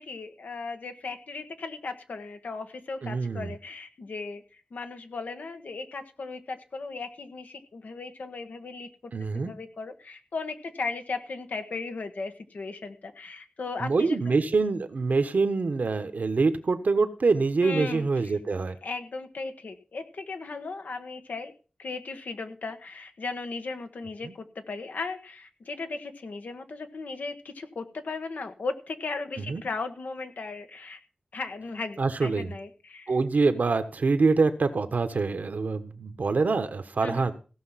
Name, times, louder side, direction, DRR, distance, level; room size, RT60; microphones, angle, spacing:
voice 1, 0.0-4.4 4.7-14.4 17.6-18.4 18.8-21.5 21.8-31.0 31.3-33.2 37.0-37.3, left 3 dB, 90° left, 7 dB, 1.2 m, -37 dB
voice 2, 3.0-3.5 9.1-9.5 13.8-18.7 24.2-24.3 29.5-29.6 32.0-32.5 33.1-37.3, right 4 dB, 80° right, 9 dB, 1.2 m, -25 dB
16.0 x 5.9 x 5.8 m, 0.37 s
cardioid pair, 50°, 3 cm